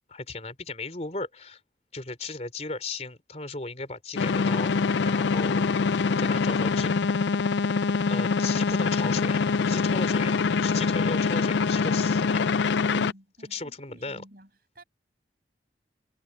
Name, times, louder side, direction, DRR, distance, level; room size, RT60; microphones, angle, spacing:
voice 1, 0.1-1.6 1.9-4.7 5.0-6.9 8.0-12.4 13.5-14.2, left 3 dB, 35° left, 4.0 m, -36 dB
sound 1, 4.2-13.1, left 4 dB, 80° left, 0.4 m, -24 dB
voice 2, 6.0-7.1 12.9-14.5 14.7-14.8, right 1 dB, 55° right, 6.4 m, -49 dB
head